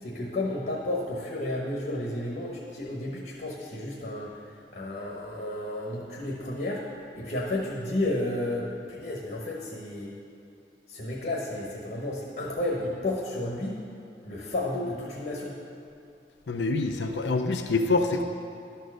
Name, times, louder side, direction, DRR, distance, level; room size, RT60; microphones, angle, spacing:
voice 1, 0.0-4.4 4.7-6.8 7.1-10.1 10.9-13.8 14.2-15.5, left 1 dB, 55° left, -3 dB, 1.1 m, -32 dB
voice 2, 16.5-18.2, left 3 dB, 80° left, 6 dB, 0.5 m, -26 dB
12.0 x 4.5 x 6.3 m, 2.6 s
head